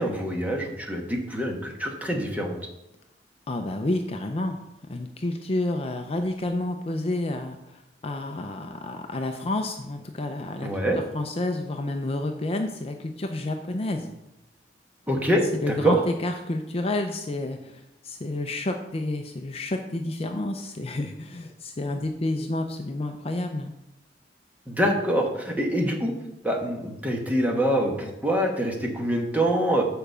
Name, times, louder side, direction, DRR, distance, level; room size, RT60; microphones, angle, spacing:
voice 1, 0.0-2.6 10.6-11.0 15.1-16.0 24.7-26.1 26.4-29.9, right 1 dB, 10° right, 0 dB, 1.3 m, -25 dB
voice 2, 3.5-4.6 4.9-10.7 11.1-14.1 15.6-23.7, left 2 dB, 35° left, 5 dB, 0.5 m, -30 dB
6.8 x 5.0 x 6.7 m, 0.86 s
head